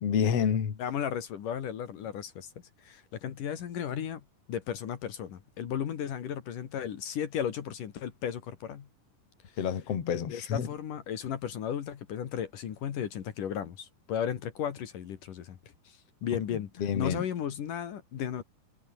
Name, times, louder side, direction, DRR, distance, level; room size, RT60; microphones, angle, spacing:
voice 1, 0.0-0.8 9.6-10.7 16.8-17.2, left 7 dB, 50° left, 3.1 m, -28 dB
voice 2, 0.8-2.5 2.8-4.2 4.5-8.9 10.3-18.4, left 9 dB, 70° left, 3.5 m, -35 dB
omnidirectional pair, 3.9 m